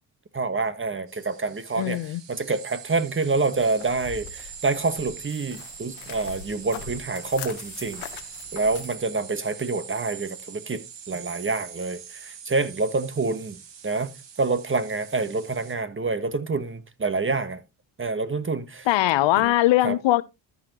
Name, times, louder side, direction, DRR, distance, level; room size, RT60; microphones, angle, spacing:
voice 1, 0.3-8.0 8.5-17.6 18.0-18.9 19.4-19.5 19.8-20.0, right 3 dB, 25° right, 1.3 m, -27 dB
sound 1, 1.1-15.7, right 7 dB, 60° right, 2.0 m, -43 dB
voice 2, 1.8-2.2 18.9-20.2, left 15 dB, 65° left, 0.7 m, -21 dB
sound 2, 3.5-9.0, left 10 dB, 90° left, 1.0 m, -42 dB
13.5 x 5.7 x 2.9 m
supercardioid pair, 60°, 48 cm